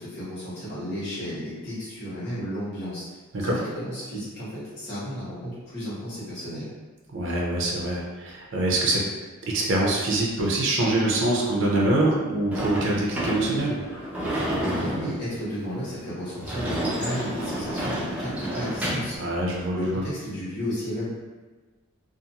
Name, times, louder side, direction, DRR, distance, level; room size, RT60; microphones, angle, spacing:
voice 1, 0.0-3.0 3.4-6.7 14.7-19.2 19.7-21.1, equal, 50° left, -10 dB, 1.3 m, -33 dB
voice 2, 7.1-9.0 9.5-13.8 19.2-20.0, right 1 dB, 55° right, -3 dB, 0.5 m, -24 dB
Sliding door / Slam, 12.5-19.2, right 1 dB, 5° right, 0.5 m, -30 dB
2.5 x 2.4 x 2.8 m, 1.3 s
head